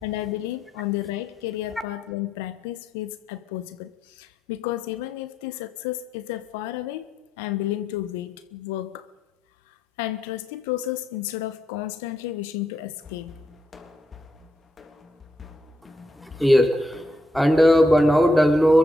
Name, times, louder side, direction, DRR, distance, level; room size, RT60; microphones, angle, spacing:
voice 1, 0.0-9.1 9.6-13.3, left 15 dB, 75° left, 13 dB, 1.2 m, -32 dB
sound 1, 13.0-18.3, left 5 dB, 35° left, 3.3 m, -47 dB
voice 2, 16.2-17.0 17.3-18.8, equal, ahead, 5 dB, 4.3 m, -17 dB
24.5 x 22.0 x 5.2 m, 1.1 s
hypercardioid pair, 65°, 0 cm